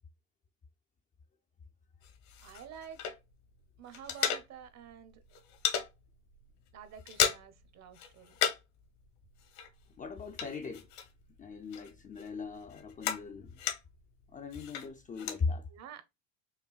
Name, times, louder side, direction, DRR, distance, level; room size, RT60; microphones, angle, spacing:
sound 1, 2.0-3.5 3.7-4.9 5.1-5.9 6.3-6.5 6.8-7.7 7.9-8.8 9.0-11.4 11.7-14.1 14.5-15.4, left 9 dB, 70° left, 1.2 m, -35 dB
voice 1, 2.4-3.0 3.8-5.2 6.7-8.4 15.7-16.0, right 8 dB, 45° right, 0.8 m, -49 dB
voice 2, 10.0-10.9 11.4-13.6 14.3-15.7, left 4 dB, 20° left, 0.4 m, -38 dB
5.6 x 2.1 x 2.3 m
supercardioid pair, 100°, 40 cm